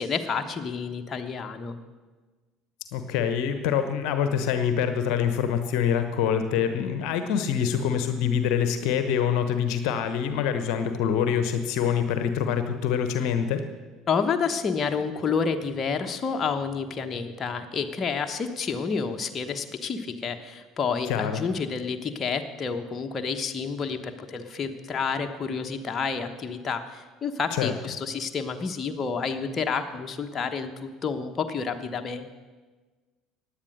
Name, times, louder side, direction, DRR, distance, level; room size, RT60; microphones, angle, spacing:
voice 1, 0.0-1.8 14.1-32.4, left 5 dB, 35° left, 5 dB, 1.1 m, -29 dB
voice 2, 2.9-13.6 21.0-21.5 27.5-27.7, left 8 dB, 60° left, 9 dB, 1.0 m, -25 dB
16.0 x 10.5 x 6.5 m, 1.3 s
figure-of-eight pair, 60°, 0 cm